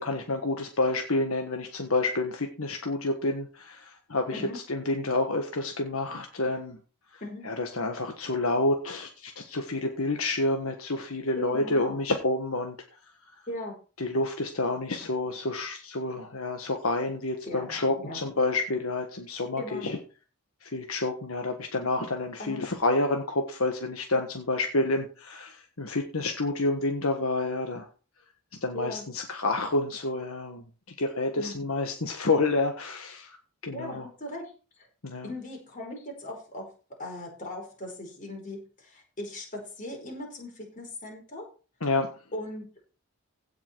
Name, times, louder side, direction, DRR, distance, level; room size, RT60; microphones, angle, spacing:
voice 1, 0.0-6.8 7.1-12.7 14.0-20.0 20.6-27.9 28.6-30.6 31.0-33.4 33.6-34.1 35.0-35.3 41.8-42.1, left 2 dB, 70° left, 4 dB, 1.5 m, -29 dB
voice 2, 11.4-12.0 13.5-13.7 17.5-18.3 19.6-19.9 22.4-22.6 28.7-29.0 31.4-31.6 33.7-34.5 34.8-34.9 35.2-36.7 37.0-41.5 42.3-42.7, left 1 dB, 35° left, 1 dB, 4.9 m, -38 dB
16.5 x 5.8 x 4.6 m, 0.35 s
head